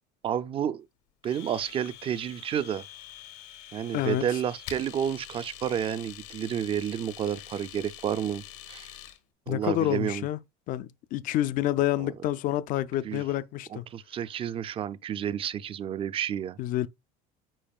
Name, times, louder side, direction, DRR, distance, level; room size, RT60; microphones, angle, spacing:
voice 1, 0.2-0.8 1.2-2.9 3.7-8.9 9.5-10.3 12.0-12.1 13.0-13.2 13.7-16.6, right 9 dB, 30° right, 0.4 m, -30 dB
Domestic sounds home sounds, 1.2-9.2, left 12 dB, 75° left, 1.2 m, -45 dB
voice 2, 3.9-4.4 9.5-10.4 10.7-13.9 16.6-16.9, left 13 dB, 45° left, 0.4 m, -28 dB
8.8 x 4.9 x 2.4 m
cardioid pair, 135°, 19 cm